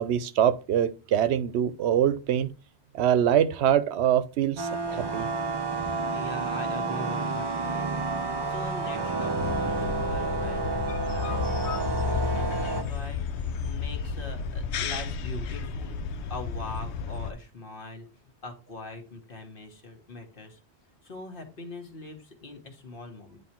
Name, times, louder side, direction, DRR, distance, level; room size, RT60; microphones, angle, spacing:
voice 1, 0.0-2.5 2.9-5.3, right 10 dB, 85° right, 0.9 m, -24 dB
sound 1, 4.6-12.8, right 3 dB, 30° right, 0.6 m, -30 dB
voice 2, 6.1-8.0 8.5-11.4 11.9-18.1 18.4-20.6 21.0-23.4, left 2 dB, 55° left, 1.5 m, -42 dB
sound 2, 9.4-17.3, left 6 dB, 85° left, 0.9 m, -32 dB
9.3 x 3.3 x 4.3 m
omnidirectional pair, 1.1 m